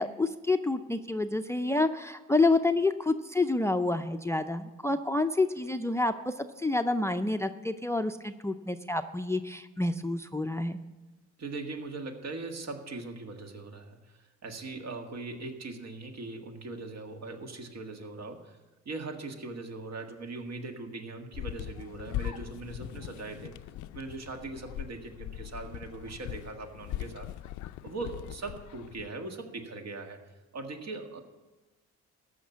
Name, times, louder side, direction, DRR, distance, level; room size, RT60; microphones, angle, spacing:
voice 1, 0.0-10.8, left 2 dB, 10° left, 10 dB, 0.5 m, -28 dB
voice 2, 11.4-18.6 18.9-23.5 23.9-27.3 27.8-30.2 30.5-31.2, right 3 dB, 60° right, 4 dB, 1.8 m, -40 dB
sound 1, 21.3-29.1, left 13 dB, 75° left, 0.5 m, -40 dB
14.0 x 5.8 x 8.4 m, 1.2 s
cardioid pair, 90°, 30 cm